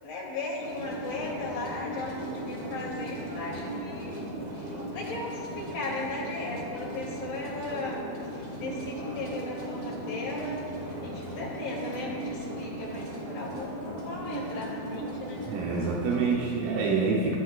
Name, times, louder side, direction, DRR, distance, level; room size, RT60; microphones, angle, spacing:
voice 1, 0.0-4.2 4.6-8.0 8.3-10.6 11.0-15.4, left 2 dB, 70° left, -5 dB, 4.4 m, -37 dB
sound 1, 0.6-16.4, right 1 dB, 40° right, 2.9 m, -37 dB
voice 2, 15.5-17.4, right 4 dB, 80° right, -2 dB, 2.7 m, -27 dB
16.5 x 12.5 x 2.4 m, 2.4 s
omnidirectional pair, 4.1 m